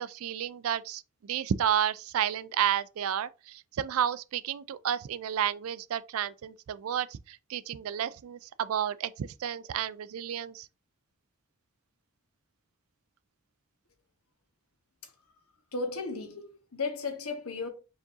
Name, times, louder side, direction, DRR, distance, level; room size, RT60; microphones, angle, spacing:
voice 1, 0.0-10.7, right 9 dB, 70° right, 0.3 m, -31 dB
voice 2, 15.7-17.7, left 4 dB, 75° left, 1.1 m, -35 dB
4.9 x 3.8 x 2.6 m
head